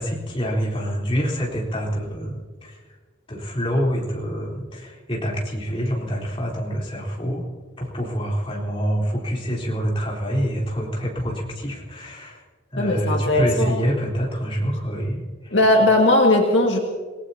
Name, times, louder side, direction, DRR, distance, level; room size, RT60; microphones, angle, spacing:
voice 1, 0.0-2.8 3.3-7.5 7.8-12.4 12.7-15.6, equal, 25° left, -3 dB, 3.8 m, -26 dB
voice 2, 12.8-13.7 15.5-16.8, left 1 dB, 65° left, 0 dB, 1.9 m, -18 dB
27.5 x 18.5 x 2.9 m, 1.5 s
head